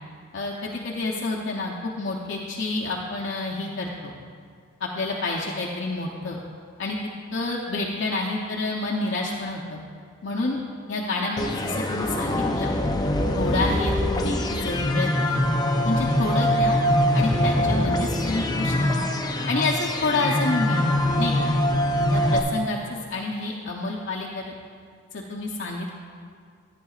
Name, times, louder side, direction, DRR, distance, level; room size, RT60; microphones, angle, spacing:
voice 1, 0.3-4.1 4.8-6.4 6.8-7.0 7.3-9.8 10.2-10.6 10.9-12.7 13.3-15.4 15.8-16.8 17.1-19.1 19.5-21.6 22.1-24.5 25.1-25.9, left 2 dB, 65° left, -3 dB, 0.7 m, -29 dB
sound 1, 11.4-22.4, left 1 dB, 20° left, 0.5 m, -23 dB
14.0 x 9.3 x 2.4 m, 2.1 s
head